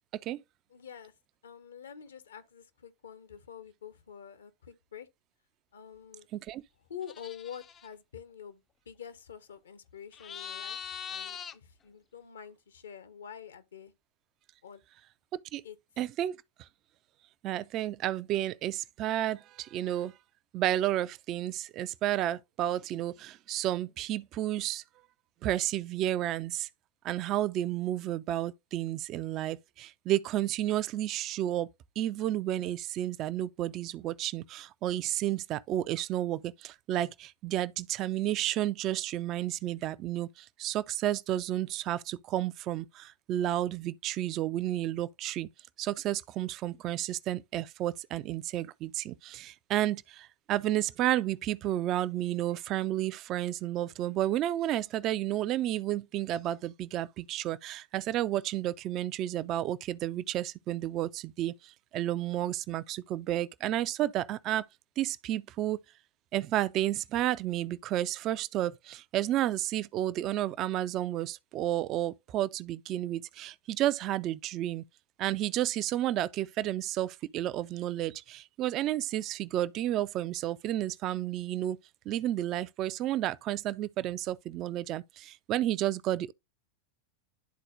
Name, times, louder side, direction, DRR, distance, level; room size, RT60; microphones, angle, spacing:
voice 1, 0.7-1.1 1.4-5.1 5.7-6.3 6.9-13.9 14.6-14.8 15.6-15.8, left 8 dB, 65° left, 0.9 m, -47 dB
voice 2, 6.3-6.6 15.5-15.6 16.0-16.4 17.4-20.1 20.5-24.8 25.4-26.7 27.0-31.7 32.0-45.5 45.8-64.7 65.0-65.8 66.3-74.8 75.2-81.8 82.1-86.3, right 13 dB, 35° right, 0.4 m, -31 dB
sound 1, 7.0-7.9 10.1-11.6, left 8 dB, 25° left, 0.5 m, -41 dB
11.5 x 4.1 x 2.4 m
figure-of-eight pair, 90°, 0 cm